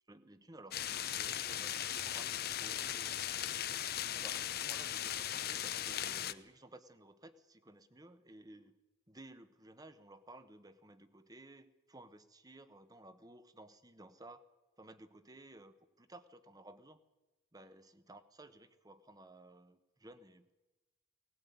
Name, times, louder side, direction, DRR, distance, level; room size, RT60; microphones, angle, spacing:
voice 1, 0.1-3.1 4.1-8.8 9.1-14.4 14.8-17.0 17.5-20.5, right 2 dB, 20° right, 12 dB, 1.1 m, -56 dB
sound 1, 0.7-6.3, left 11 dB, 50° left, 0.8 m, -38 dB
20.0 x 18.0 x 9.4 m, 1.1 s
head